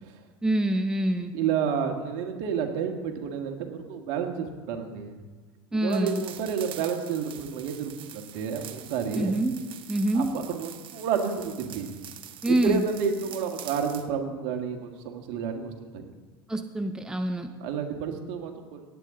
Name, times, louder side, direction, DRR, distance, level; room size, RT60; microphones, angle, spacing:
voice 1, 0.4-1.3 5.7-6.2 9.1-9.6 9.9-10.3 12.4-12.8 16.5-17.5, right 1 dB, 5° right, 7 dB, 0.7 m, -26 dB
voice 2, 1.3-5.2 5.7-9.3 10.1-11.9 12.5-16.1 17.6-18.8, right 6 dB, 60° right, 4 dB, 1.8 m, -30 dB
sound 1, 5.9-14.1, right 11 dB, 45° right, 1.0 m, -45 dB
18.0 x 8.4 x 3.8 m, 1.4 s
hypercardioid pair, 90°, 12 cm